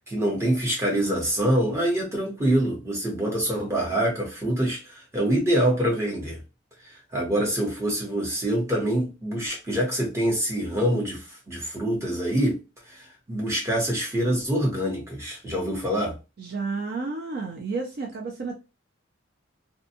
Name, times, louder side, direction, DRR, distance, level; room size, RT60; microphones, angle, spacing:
voice 1, 0.1-6.4 7.1-12.6 12.9-16.2, right 1 dB, 15° right, 0.9 m, -25 dB
voice 2, 16.4-18.5, right 4 dB, 50° right, 0.4 m, -31 dB
2.6 x 2.2 x 2.7 m
head